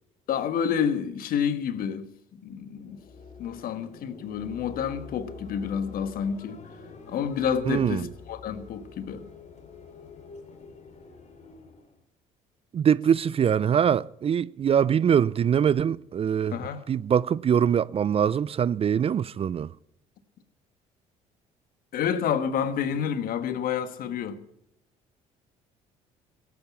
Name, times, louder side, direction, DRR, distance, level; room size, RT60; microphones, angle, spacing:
voice 1, 0.3-2.1 2.4-3.0 3.4-6.6 7.1-9.2 16.5-16.8 21.9-24.4, left 8 dB, 60° left, 1.4 m, -29 dB
sound 1, 2.6-12.0, left 4 dB, 45° left, 2.9 m, -46 dB
voice 2, 7.7-8.1 12.7-16.6 16.9-19.7, right 8 dB, 35° right, 0.4 m, -23 dB
16.5 x 8.6 x 7.2 m
hypercardioid pair, 60°, 17 cm